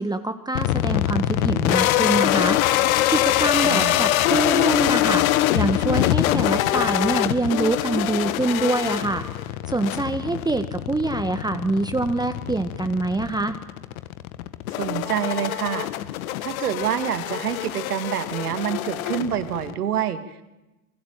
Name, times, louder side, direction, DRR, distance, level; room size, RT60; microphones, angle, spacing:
voice 1, 0.0-9.2 9.7-13.6, right 2 dB, 10° right, 9 dB, 1.6 m, -25 dB
sound 1, 0.5-19.7, left 14 dB, 70° left, 1.8 m, -24 dB
voice 2, 3.6-4.0 14.8-15.9 16.4-20.4, right 9 dB, 85° right, 10 dB, 2.4 m, -27 dB
28.0 x 21.5 x 9.2 m, 1.0 s
hypercardioid pair, 90°, 44 cm